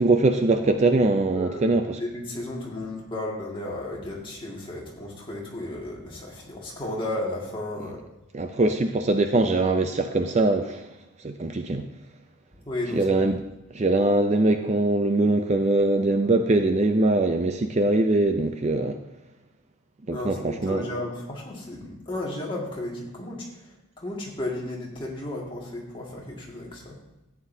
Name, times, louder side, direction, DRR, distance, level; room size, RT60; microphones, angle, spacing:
voice 1, 0.0-2.0 7.8-7.9 8.3-10.9 11.2-11.8 12.9-13.4 13.7-19.0 20.1-20.8, right 2 dB, 30° right, 7 dB, 0.4 m, -22 dB
voice 2, 1.3-8.0 12.7-13.0 20.1-23.5 24.0-27.0, left 1 dB, 25° left, -3 dB, 2.0 m, -34 dB
13.0 x 9.2 x 2.7 m, 0.93 s
head